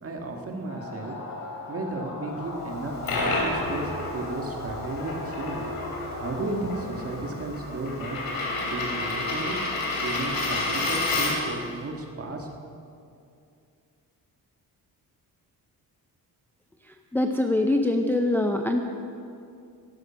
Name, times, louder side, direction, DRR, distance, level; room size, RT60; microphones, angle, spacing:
voice 1, 0.0-1.1 1.7-5.7 6.2-8.3 8.7-9.6 10.0-12.5, right 2 dB, 35° right, 2 dB, 1.6 m, -34 dB
sound 1, 0.7-6.9, left 2 dB, 45° left, 2.3 m, -38 dB
Coin (dropping), 2.7-11.6, left 2 dB, 60° left, 3.2 m, -30 dB
voice 2, 17.1-18.8, left 1 dB, 5° left, 4 dB, 0.4 m, -23 dB
13.0 x 11.5 x 6.2 m, 2.5 s
wide cardioid pair, 165°, 39 cm